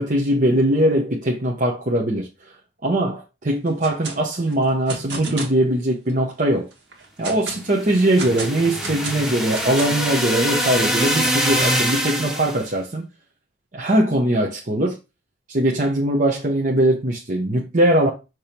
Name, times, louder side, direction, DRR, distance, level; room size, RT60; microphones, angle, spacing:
voice 1, 0.0-2.5 2.8-6.7 7.2-13.1 13.7-15.0 15.5-18.1, right 1 dB, 45° right, 1.0 m, -21 dB
sound 1, 3.7-4.2 4.5-5.6 6.1-6.2 6.7-7.6 8.2-10.1, right 3 dB, 85° right, 1.8 m, -33 dB
sound 2, 7.7-12.6, equal, ahead, 1.0 m, -24 dB
6.4 x 3.0 x 5.2 m
head